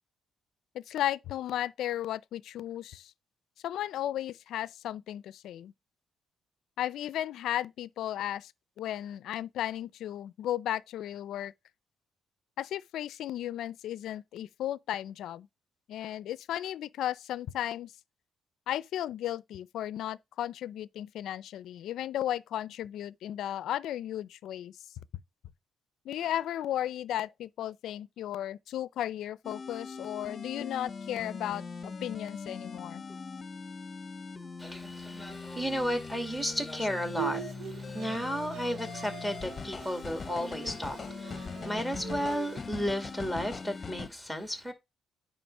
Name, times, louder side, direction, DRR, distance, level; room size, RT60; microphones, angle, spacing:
voice 1, 0.7-3.1 3.6-5.7 6.8-8.5 8.8-11.5 12.6-15.5 15.9-17.9 18.7-24.7 26.1-33.0, left 12 dB, 80° left, 0.4 m, -35 dB
sound 1, 29.4-44.1, left 4 dB, 35° left, 0.9 m, -41 dB
voice 2, 34.6-44.7, equal, 5° right, 2.3 m, -33 dB
Bowed string instrument, 37.2-42.6, right 11 dB, 80° right, 0.6 m, -43 dB
9.2 x 3.2 x 5.4 m
cardioid pair, 90°, 0 cm